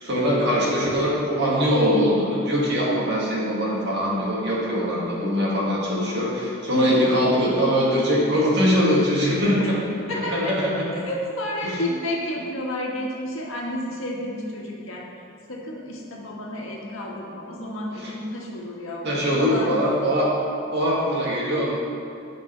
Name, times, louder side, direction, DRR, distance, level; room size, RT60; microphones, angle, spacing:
voice 1, 0.0-9.6 10.3-11.0 11.6-11.8 18.0-18.1 19.0-20.3 20.7-21.7, equal, 50° right, -5 dB, 2.0 m, -22 dB
voice 2, 6.7-7.0 9.6-9.7 10.0-10.6 10.9-15.1 15.5-20.0, left 1 dB, 70° left, -3 dB, 1.6 m, -30 dB
15.5 x 5.3 x 3.3 m, 2.6 s
head